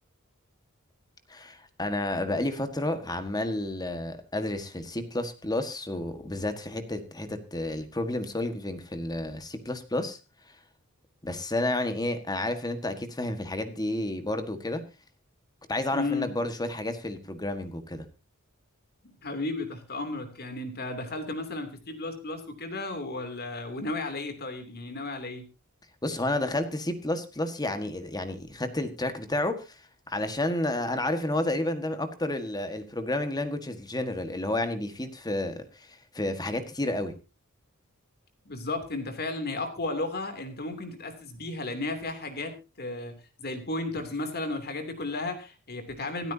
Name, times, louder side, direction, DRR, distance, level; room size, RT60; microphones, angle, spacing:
voice 1, 1.3-10.2 11.2-14.8 15.7-18.0 26.0-29.8 30.1-35.9 36.1-37.1, left 1 dB, 20° left, 9 dB, 1.6 m, -31 dB
voice 2, 15.9-16.3 19.0-25.4 38.4-43.1 43.4-46.3, left 2 dB, 50° left, 7 dB, 2.9 m, -34 dB
26.5 x 9.0 x 2.8 m, 0.29 s
head